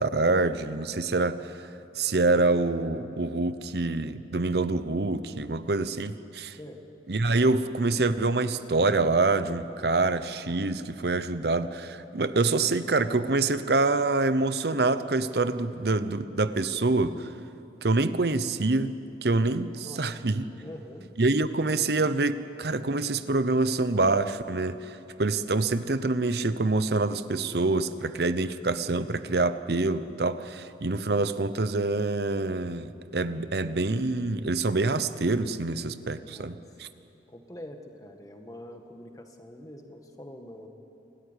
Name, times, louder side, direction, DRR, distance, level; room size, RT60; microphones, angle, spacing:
voice 1, 0.0-1.5 2.0-6.6 7.1-17.3 17.8-19.0 19.2-20.5 21.2-36.9, right 3 dB, 65° right, 13 dB, 0.8 m, -26 dB
voice 2, 20.6-21.1 36.2-36.6 37.3-40.7, left 1 dB, 20° left, 4 dB, 1.6 m, -45 dB
27.0 x 13.0 x 9.8 m, 2.8 s
head